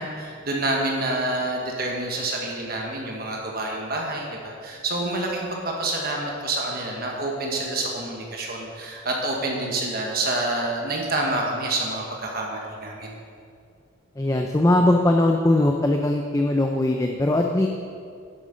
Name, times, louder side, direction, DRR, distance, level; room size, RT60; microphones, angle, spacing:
voice 1, 0.0-13.2, right 2 dB, 45° right, 0 dB, 1.3 m, -28 dB
voice 2, 14.2-17.7, left 1 dB, 15° left, 3 dB, 0.4 m, -20 dB
11.0 x 8.3 x 5.1 m, 2.3 s
head